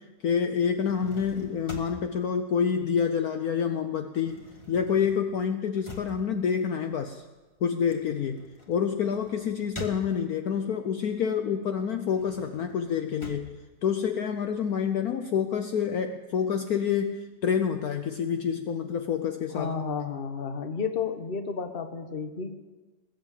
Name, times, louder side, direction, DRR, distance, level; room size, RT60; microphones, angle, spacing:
voice 1, 0.0-7.2 7.6-8.4 8.7-13.5 13.8-19.9, left 7 dB, 65° left, 7 dB, 1.2 m, -28 dB
sound 1, 0.7-3.5 3.8-10.6 11.1-14.6, left 1 dB, 15° left, 1.8 m, -47 dB
voice 2, 19.5-22.6, left 6 dB, 35° left, 7 dB, 1.2 m, -32 dB
20.5 x 8.9 x 7.6 m, 1.2 s
omnidirectional pair, 1.9 m